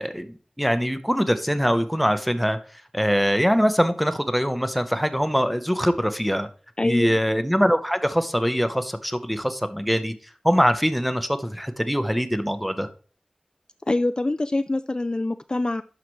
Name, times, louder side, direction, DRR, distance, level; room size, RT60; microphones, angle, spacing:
voice 1, 0.0-2.6 2.9-6.5 6.8-10.1 10.4-12.9, equal, ahead, 0.8 m, -23 dB
voice 2, 6.8-7.1 13.9-15.8, left 2 dB, 35° left, 0.4 m, -25 dB
11.5 x 5.8 x 3.1 m
wide cardioid pair, 65°, 2 cm